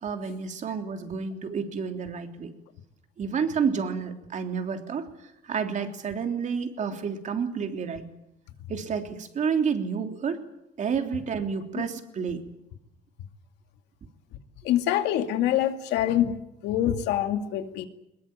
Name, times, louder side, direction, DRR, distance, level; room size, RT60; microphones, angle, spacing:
voice 1, 0.0-2.5 3.2-5.1 5.4-8.0 8.7-10.4 10.8-12.4, right 6 dB, 45° right, 5 dB, 3.2 m, -30 dB
voice 2, 14.6-16.4 16.6-17.9, left 11 dB, 90° left, 7 dB, 2.4 m, -25 dB
21.5 x 21.0 x 9.0 m, 0.87 s
cardioid pair, 110°, 17 cm